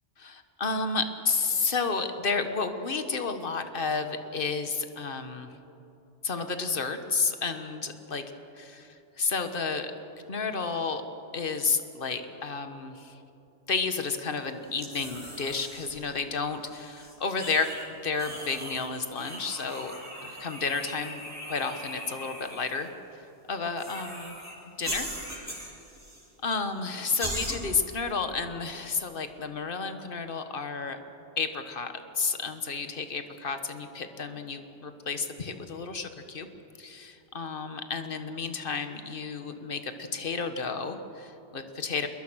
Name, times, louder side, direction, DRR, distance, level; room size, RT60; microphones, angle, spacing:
voice 1, 0.2-5.5 6.2-8.2 8.5-9.9 10.3-11.0 11.3-13.2 13.7-17.8 18.0-19.9 20.2-24.4 24.8-25.6 26.4-31.0 31.4-36.5 36.8-42.1, left 4 dB, 50° left, 8 dB, 1.6 m, -31 dB
sound 1, 14.8-16.0 16.7-17.9 18.1-18.9 19.2-22.8 23.8-24.5 24.8-26.3 26.5-26.6 27.2-27.6, equal, 15° right, 7.6 m, -39 dB
28.0 x 21.5 x 6.4 m, 2.9 s
omnidirectional pair, 1.1 m